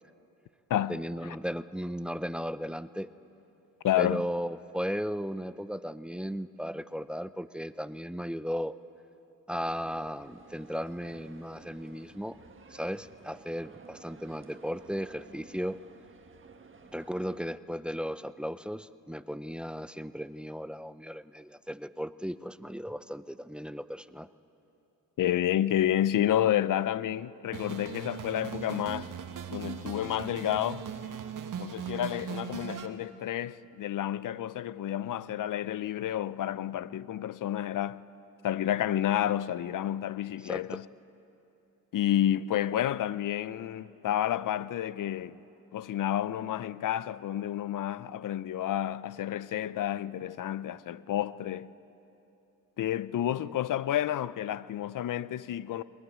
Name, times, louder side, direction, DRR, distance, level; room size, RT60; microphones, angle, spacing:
voice 1, 0.9-3.1 4.0-8.8 9.5-12.4 12.7-15.8 16.9-24.3 40.4-40.8, equal, 5° right, 0.6 m, -36 dB
voice 2, 3.8-4.3 25.2-29.1 29.5-30.9 31.6-38.0 38.4-40.8 41.9-45.4 45.7-51.7 52.8-55.8, left 11 dB, 60° left, 0.7 m, -30 dB
sound 1, 9.6-17.4, right 4 dB, 35° right, 1.5 m, -54 dB
sound 2, 27.5-32.9, right 8 dB, 55° right, 1.6 m, -39 dB
21.5 x 20.0 x 9.4 m
cardioid pair, 80°, 37 cm